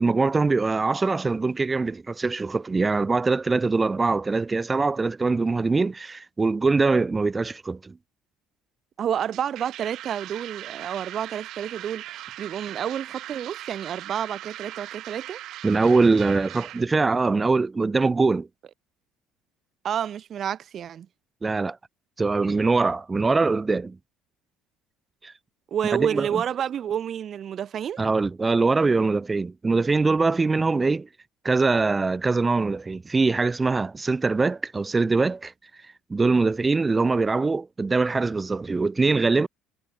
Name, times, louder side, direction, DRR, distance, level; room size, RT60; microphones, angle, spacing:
voice 1, 0.0-8.0 15.6-18.5 21.4-21.8 22.2-24.0 25.2-25.3 25.9-26.4 28.0-31.1 31.4-35.5 36.1-39.5, right 3 dB, 20° right, 1.4 m, -23 dB
voice 2, 9.0-15.4 19.8-21.1 25.7-28.0, right 9 dB, 45° right, 1.2 m, -29 dB
sound 1, 9.2-16.8, right 14 dB, 65° right, 5.0 m, -40 dB
supercardioid pair, 100°, 0 cm